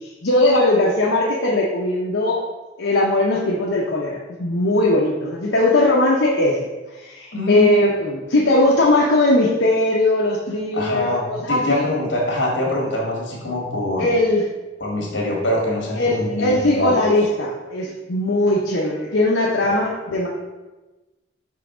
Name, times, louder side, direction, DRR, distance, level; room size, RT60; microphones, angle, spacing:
voice 1, 0.0-2.4 2.8-6.6 7.0-11.8 14.0-14.4 15.9-20.3, left 1 dB, 85° left, -4 dB, 0.8 m, -19 dB
voice 2, 7.3-7.7 10.7-14.1 14.8-17.1, left 1 dB, 70° left, -2 dB, 1.8 m, -24 dB
5.7 x 3.4 x 5.0 m, 1.1 s
head